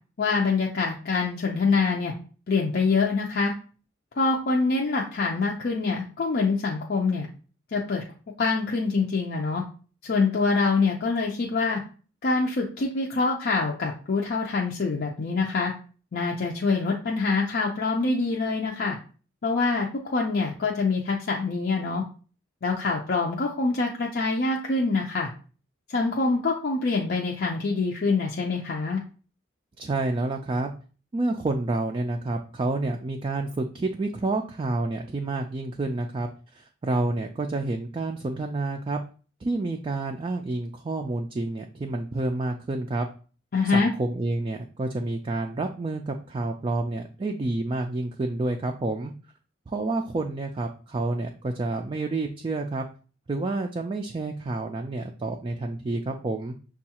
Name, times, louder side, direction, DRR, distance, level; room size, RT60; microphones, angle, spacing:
voice 1, 0.2-2.1 2.5-3.5 4.2-7.3 7.7-8.0 8.4-9.6 10.0-11.8 12.2-15.7 16.1-19.0 19.4-22.0 22.6-25.3 25.9-29.0 43.5-43.9, left 4 dB, 50° left, 0 dB, 0.5 m, -25 dB
voice 2, 29.8-30.7 31.1-36.3 36.5-39.0 39.4-43.1 43.6-49.1 49.7-52.8 53.3-56.5, right 2 dB, 25° right, 3 dB, 0.3 m, -29 dB
6.2 x 2.3 x 2.8 m, 0.38 s
head